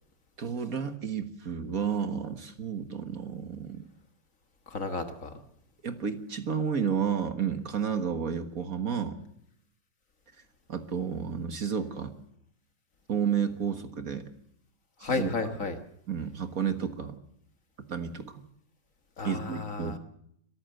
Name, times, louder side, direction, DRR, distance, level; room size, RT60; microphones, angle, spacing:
voice 1, 0.4-3.8 5.8-9.2 10.7-12.2 13.1-14.2 15.0-15.3 16.1-17.2 17.9-18.4 19.2-20.0, right 7 dB, 50° right, 9 dB, 1.8 m, -31 dB
voice 2, 4.7-5.4 15.0-15.8 19.2-20.0, left 3 dB, 45° left, 7 dB, 1.9 m, -32 dB
23.0 x 14.5 x 7.9 m, 0.72 s
omnidirectional pair, 2.0 m